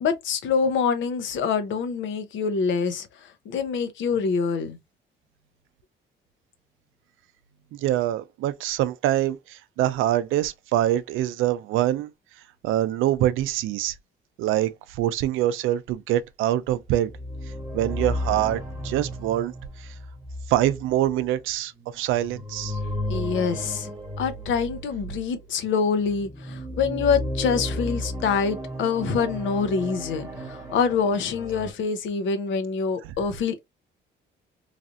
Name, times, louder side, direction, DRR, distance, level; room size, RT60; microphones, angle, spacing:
voice 1, 0.0-3.1 3.5-4.8 23.1-23.9 24.2-33.7, left 5 dB, 75° left, 0.7 m, -25 dB
voice 2, 7.7-12.1 12.6-13.9 14.4-17.1 17.7-19.9 20.5-22.8 33.0-33.1, right 13 dB, 90° right, 0.4 m, -25 dB
sound 1, 16.9-25.4 26.0-31.7, equal, 15° right, 1.3 m, -34 dB
3.2 x 2.5 x 2.5 m
cardioid pair, 90°, 20 cm